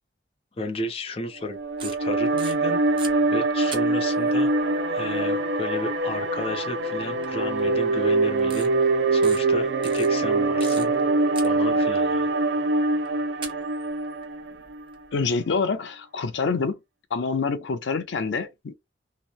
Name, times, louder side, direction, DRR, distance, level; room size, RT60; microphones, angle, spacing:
voice 1, 0.6-2.8 3.3-4.5 4.9-8.7 9.1-10.9 11.4-12.3, left 2 dB, 30° left, 0.5 m, -33 dB
sound 1, 1.5-14.8, right 2 dB, 85° right, 0.4 m, -23 dB
sound 2, 1.6-3.1 3.7-4.3 6.0-6.1 7.2-7.3 7.6-7.7 8.4-8.7 9.2-9.4 9.8-11.1 11.4-12.0 13.1-13.2 13.4-15.1, right 5 dB, 30° right, 0.7 m, -39 dB
voice 2, 15.1-16.8 17.1-18.7, left 4 dB, 85° left, 0.5 m, -26 dB
2.8 x 2.0 x 2.3 m
head